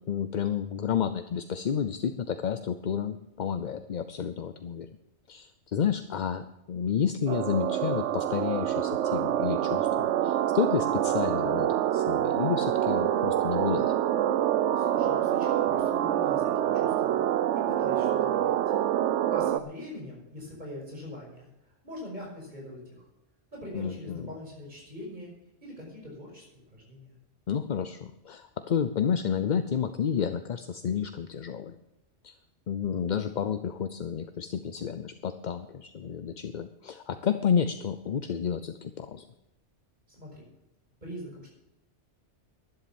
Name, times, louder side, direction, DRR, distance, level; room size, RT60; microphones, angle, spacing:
voice 1, 0.1-4.9 5.3-13.9 23.7-24.3 27.5-31.8 32.2-32.4 32.7-39.2, left 7 dB, 50° left, 10 dB, 0.6 m, -30 dB
sound 1, 7.3-19.6, right 11 dB, 80° right, 1.0 m, -26 dB
voice 2, 14.8-17.2 17.5-18.6 19.3-21.5 21.8-23.1 23.5-25.3 25.6-26.5 26.7-27.1 40.1-40.5 41.0-41.5, left 1 dB, 40° right, -2 dB, 5.9 m, -42 dB
11.5 x 11.0 x 7.1 m, 0.89 s
omnidirectional pair, 1.2 m